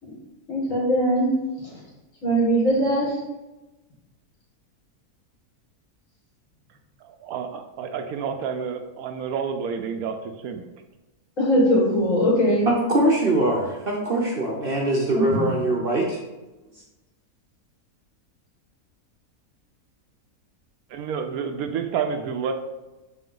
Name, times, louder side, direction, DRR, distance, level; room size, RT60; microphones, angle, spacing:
voice 1, 0.5-1.8 2.2-3.2 11.4-12.7 15.1-15.5, equal, 55° left, -4 dB, 2.2 m, -21 dB
voice 2, 7.0-10.7 20.9-22.5, right 6 dB, 75° right, 6 dB, 1.1 m, -29 dB
voice 3, 12.7-16.2, right 1 dB, 45° right, -2 dB, 0.8 m, -22 dB
6.2 x 4.2 x 3.8 m, 1.1 s
omnidirectional pair, 1.6 m